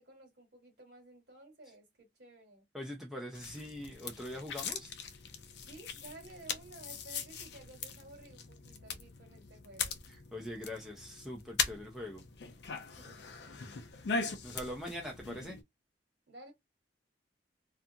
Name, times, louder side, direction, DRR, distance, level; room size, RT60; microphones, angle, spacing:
voice 1, 0.0-2.6 5.6-10.0 13.0-13.8 16.3-16.5, right 2 dB, 60° right, 1.3 m, -54 dB
voice 2, 2.7-5.0 10.1-12.2 14.4-15.6, left 1 dB, ahead, 0.5 m, -42 dB
sound 1, 3.3-15.6, left 5 dB, 65° left, 0.4 m, -40 dB
2.5 x 2.4 x 2.7 m
head